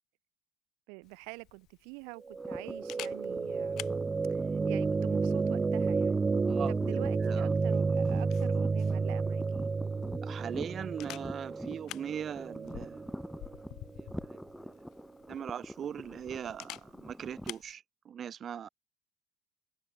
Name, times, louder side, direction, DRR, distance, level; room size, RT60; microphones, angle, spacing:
voice 1, 0.9-6.2 6.7-9.7, right 40 dB or more, 65° right, 5.3 m, -47 dB
Camera, 1.0-17.7, left 15 dB, 55° left, 2.4 m, -51 dB
sound 1, 2.3-14.3, right 4 dB, 25° right, 1.3 m, -31 dB
sound 2, 2.4-17.5, equal, 5° left, 1.1 m, -45 dB
voice 2, 6.5-7.6 10.2-13.1 14.0-14.8 15.3-18.7, right 8 dB, 40° right, 0.7 m, -40 dB
hypercardioid pair, 65°, 0 cm